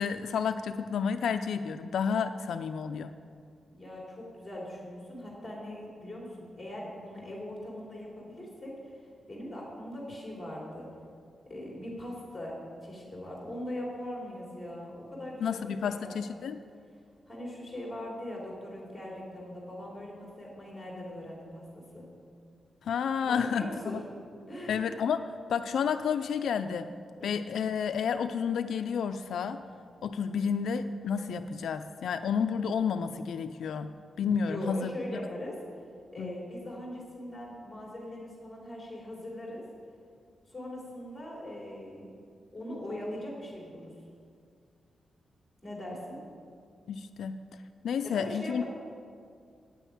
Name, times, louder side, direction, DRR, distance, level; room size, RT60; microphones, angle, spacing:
voice 1, 0.0-3.1 15.4-16.6 22.8-24.0 24.7-25.2 25.5-26.9 27.2-29.6 30.0-34.9 36.2-36.3 46.9-47.4 47.8-48.6, left 6 dB, 75° left, 8 dB, 0.4 m, -31 dB
voice 2, 3.7-10.9 11.5-16.3 17.3-22.1 23.3-24.0 24.5-24.9 27.2-27.3 34.4-35.6 36.1-39.6 40.5-42.1 42.5-43.9 45.6-46.2 48.0-48.6, left 1 dB, 5° left, -4 dB, 3.5 m, -41 dB
9.1 x 9.0 x 8.7 m, 2.2 s
wide cardioid pair, 180°, 0 cm